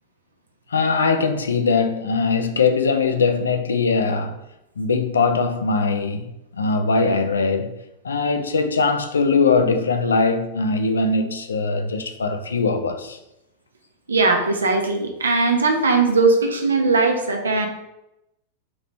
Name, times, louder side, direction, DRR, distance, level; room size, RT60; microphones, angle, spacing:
voice 1, 0.7-4.4 4.8-6.3 6.6-7.8 8.0-13.2, left 4 dB, 70° left, 0.3 m, -21 dB
voice 2, 14.1-17.7, right 3 dB, 70° right, 0.6 m, -19 dB
2.9 x 2.8 x 3.2 m
figure-of-eight pair, 90°, 0 cm